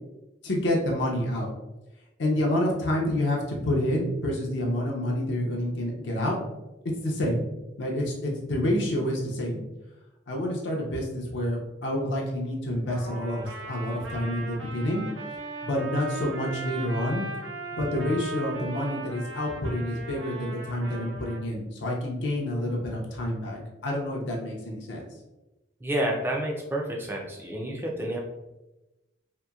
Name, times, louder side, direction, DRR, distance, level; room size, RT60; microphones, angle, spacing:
voice 1, 0.4-1.5 2.2-6.4 6.8-7.4 7.8-9.7 10.3-15.1 15.6-17.3 17.7-25.0, left 1 dB, 70° left, -1 dB, 0.5 m, -28 dB
Trumpet, 12.9-21.4, right 3 dB, 85° right, 0.7 m, -38 dB
voice 2, 25.8-28.2, right 1 dB, 10° right, -1 dB, 0.4 m, -29 dB
2.8 x 2.5 x 2.3 m, 1.0 s
head